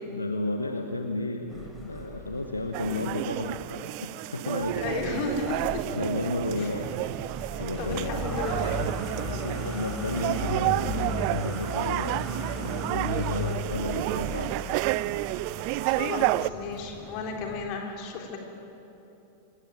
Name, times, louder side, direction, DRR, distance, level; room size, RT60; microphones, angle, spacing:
voice 1, 0.0-5.2 5.9-6.9 7.3-8.3 9.2-12.3 12.6-14.8, left 2 dB, 80° left, 5 dB, 1.3 m, -33 dB
sound 1, 1.5-3.8 4.6-17.7, equal, 5° right, 4.6 m, -36 dB
sound 2, 2.7-16.5, right 19 dB, 45° right, 0.4 m, -31 dB
voice 2, 4.8-5.8 6.6-6.7 7.8-8.9 9.4-9.6 15.8-18.4, left 4 dB, 45° left, 2 dB, 3.6 m, -34 dB
26.5 x 16.0 x 9.1 m, 3.0 s
figure-of-eight pair, 90°, 0 cm